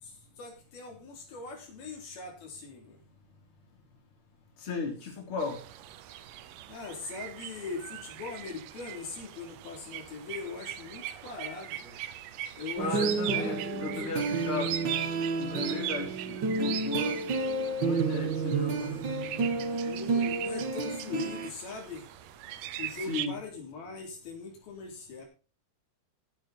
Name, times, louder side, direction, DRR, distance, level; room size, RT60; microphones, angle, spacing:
voice 1, 0.0-3.0 5.0-5.2 6.7-12.0 12.5-14.0 19.8-22.1 22.8-25.3, left 4 dB, 85° left, 1 dB, 5.6 m, -41 dB
voice 2, 4.6-5.6 12.8-14.7 15.4-17.2 17.7-19.2 23.1-23.3, left 3 dB, 35° left, 1 dB, 4.4 m, -35 dB
sound 1, 5.4-23.3, right 13 dB, 75° right, 2.4 m, -40 dB
sound 2, 12.8-21.5, right 4 dB, 50° right, 1.4 m, -31 dB
16.0 x 8.5 x 4.3 m, 0.34 s
omnidirectional pair, 4.2 m